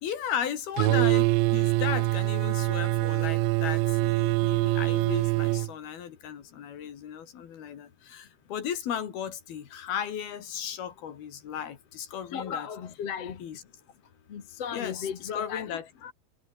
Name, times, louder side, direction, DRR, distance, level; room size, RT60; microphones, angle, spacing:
voice 1, 0.0-12.7 13.4-13.6 14.7-15.8, left 9 dB, 70° left, 4.3 m, -35 dB
sound 1, 0.8-5.7, right 19 dB, 85° right, 2.0 m, -24 dB
voice 2, 12.3-13.4 14.3-16.1, left 7 dB, 45° left, 2.5 m, -36 dB
omnidirectional pair, 4.7 m